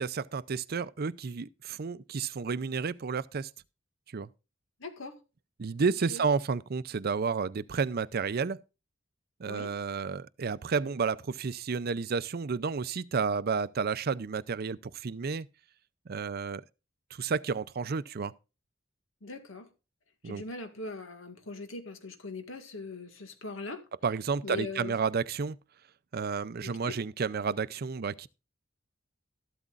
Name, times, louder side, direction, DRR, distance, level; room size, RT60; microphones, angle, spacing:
voice 1, 0.0-3.5 4.1-4.3 5.6-8.6 9.4-15.5 16.1-16.6 17.1-18.3 20.2-20.4 24.0-25.6 26.1-28.3, right 5 dB, 50° right, 0.5 m, -31 dB
voice 2, 4.8-5.2 6.1-6.2 9.4-9.7 19.2-19.7 20.2-23.8 24.4-25.0 26.6-27.0, left 3 dB, 80° left, 1.9 m, -40 dB
13.0 x 12.0 x 2.5 m
head